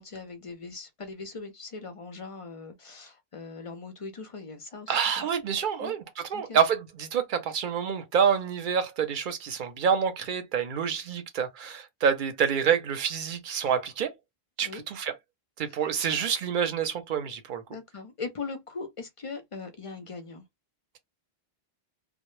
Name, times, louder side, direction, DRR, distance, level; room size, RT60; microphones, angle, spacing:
voice 1, 0.0-5.3 5.8-5.9 6.3-6.6 14.6-14.8 17.7-20.4, left 4 dB, 45° left, 0.4 m, -40 dB
voice 2, 4.9-14.1 14.6-15.1 15.6-17.6, right 7 dB, 60° right, 0.7 m, -27 dB
2.1 x 2.0 x 3.0 m
omnidirectional pair, 1.1 m